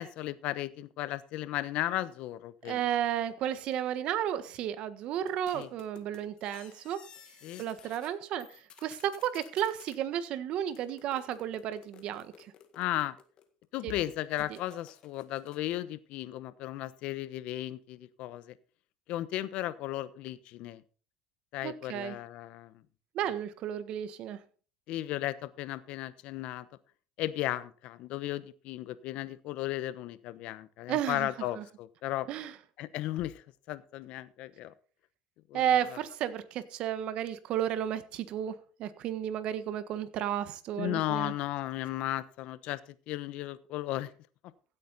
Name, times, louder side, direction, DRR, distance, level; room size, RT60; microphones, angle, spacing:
voice 1, 0.0-2.8 5.5-5.7 7.4-7.6 12.7-13.2 13.7-18.5 19.1-20.8 21.5-22.7 24.9-26.7 27.2-32.3 32.8-34.7 35.5-35.6 35.9-36.0 40.8-42.8 43.1-44.1, left 15 dB, 65° left, 1.0 m, -35 dB
voice 2, 2.6-7.0 7.6-12.5 13.8-13.9 21.6-22.2 23.1-24.4 30.9-31.3 31.6-31.7 32.3-32.5 35.5-41.3, right 10 dB, 55° right, 1.4 m, -33 dB
sound 1, 5.3-8.1 8.4-10.0 10.7-13.6 14.3-15.8, left 8 dB, 45° left, 1.9 m, -55 dB
16.0 x 8.5 x 4.1 m
supercardioid pair, 115°, 2 cm